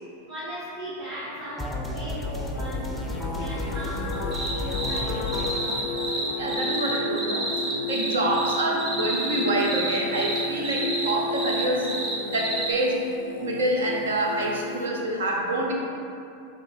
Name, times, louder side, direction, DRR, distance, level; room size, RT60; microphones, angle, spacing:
voice 1, 0.3-2.9 3.3-5.8, equal, 35° right, -9 dB, 1.4 m, -37 dB
Singing, 1.0-14.9, left 2 dB, 50° left, 0.5 m, -34 dB
sound 1, 1.6-7.6, left 1 dB, ahead, 0.7 m, -33 dB
sound 2, 4.1-5.0 5.3-12.7, right 1 dB, 15° right, 1.3 m, -30 dB
voice 2, 6.4-7.5 7.9-11.9 12.2-13.1 13.4-15.7, right 1 dB, 65° right, -1 dB, 1.0 m, -26 dB
8.0 x 3.0 x 4.3 m, 2.5 s
figure-of-eight pair, 90°, 0 cm